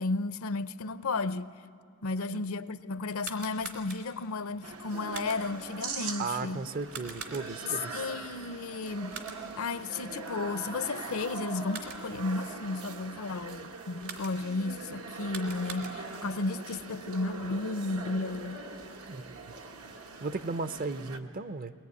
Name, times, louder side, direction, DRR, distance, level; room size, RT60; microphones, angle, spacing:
voice 1, 0.0-1.5 2.0-6.6 7.9-9.2 9.6-18.6, left 3 dB, 70° left, 0.6 m, -33 dB
sound 1, 3.0-4.3 5.1-5.7 6.9-7.8 9.1-9.7 11.5-12.2 14.0-14.6 15.1-16.3, right 5 dB, 65° right, 2.9 m, -44 dB
sound 2, 4.6-21.2, right 4 dB, 85° right, 1.5 m, -42 dB
voice 2, 6.2-8.1 19.1-19.2 20.2-21.7, right 4 dB, 40° right, 0.6 m, -35 dB
22.0 x 19.5 x 9.5 m
head